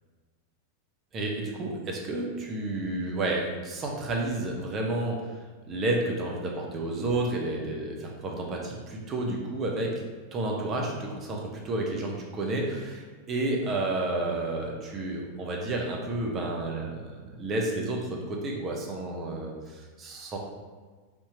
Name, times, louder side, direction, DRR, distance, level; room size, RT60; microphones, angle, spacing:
voice 1, 1.1-5.3 5.7-9.9 10.3-20.4, right 2 dB, 30° right, -1 dB, 0.6 m, -31 dB
3.5 x 2.7 x 2.8 m, 1.4 s
figure-of-eight pair, 90°, 0 cm